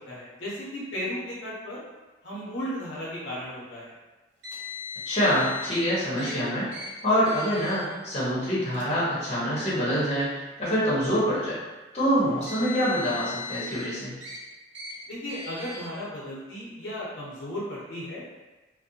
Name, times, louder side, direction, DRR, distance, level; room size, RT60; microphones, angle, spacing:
voice 1, 0.1-1.8 2.2-3.9 15.1-18.3, equal, 85° left, -6 dB, 0.7 m, -35 dB
Car, 4.4-5.8 6.2-6.3 6.7-6.9 7.3-7.8 8.7-8.8 9.8-9.9 12.2-13.8 14.2-14.4 14.7-14.9 15.3-15.9, left 4 dB, 65° right, 0.7 m, -38 dB
voice 2, 5.0-6.7 7.0-10.3 10.6-11.6 11.9-14.2, equal, 35° left, -9 dB, 0.9 m, -25 dB
2.5 x 2.1 x 2.7 m, 1.1 s
head